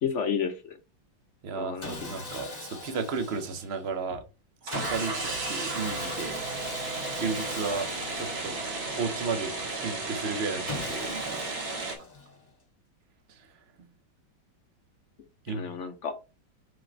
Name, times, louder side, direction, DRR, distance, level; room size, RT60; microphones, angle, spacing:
voice 1, 0.0-0.8 1.5-2.1 15.5-16.1, left 7 dB, 65° left, 0.7 m, -31 dB
voice 2, 1.4-4.2 4.6-6.4 7.1-8.7 8.9-11.7 13.3-13.6 15.4-15.7, right 4 dB, 75° right, 0.5 m, -34 dB
Sawing, 1.8-3.9 4.7-9.2 10.7-12.5, left 2 dB, 20° left, 1.9 m, -40 dB
sound 1, 4.6-11.9, right 3 dB, 50° right, 2.2 m, -34 dB
5.9 x 5.1 x 3.3 m
omnidirectional pair, 2.2 m